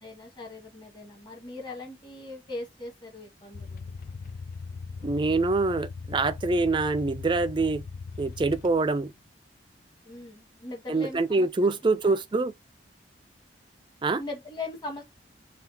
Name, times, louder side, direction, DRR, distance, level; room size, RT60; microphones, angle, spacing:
voice 1, 0.0-3.9 10.0-11.5 12.0-12.2 14.2-15.0, left 2 dB, 25° left, 1.6 m, -40 dB
sound 1, 3.5-9.1, left 4 dB, 50° left, 0.3 m, -40 dB
voice 2, 5.0-7.8 8.2-9.1 10.9-12.5 14.0-14.2, right 3 dB, 25° right, 0.4 m, -25 dB
5.6 x 2.4 x 2.8 m
head